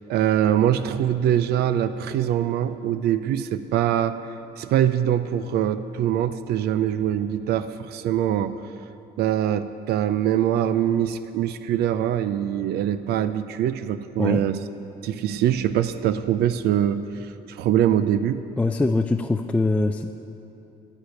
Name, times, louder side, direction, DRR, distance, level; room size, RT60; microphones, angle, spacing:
voice 1, 0.1-4.2 4.6-8.5 9.2-14.6 15.0-17.0 17.5-18.4, right 10 dB, 70° right, 12 dB, 0.5 m, -23 dB
voice 2, 18.6-20.1, left 2 dB, 10° left, 6 dB, 0.3 m, -22 dB
8.5 x 7.9 x 9.0 m, 2.9 s
cardioid pair, 110°, 17 cm